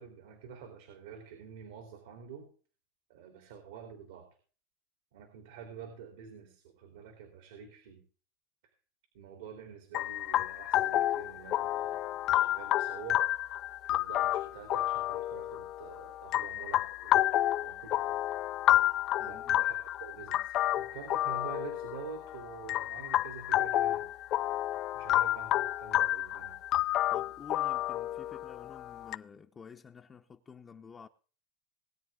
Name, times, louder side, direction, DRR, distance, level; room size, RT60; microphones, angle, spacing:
voice 1, 0.0-2.5 3.1-4.3 5.1-8.0 9.1-13.2 13.9-18.2 19.2-24.1 24.9-26.6, right 7 dB, 80° right, 3.6 m, -48 dB
sound 1, 9.9-29.2, left 14 dB, 45° left, 0.5 m, -30 dB
voice 2, 19.2-19.6 27.1-31.1, left 6 dB, 25° left, 0.9 m, -51 dB
20.0 x 9.2 x 3.8 m
supercardioid pair, 115°, 0 cm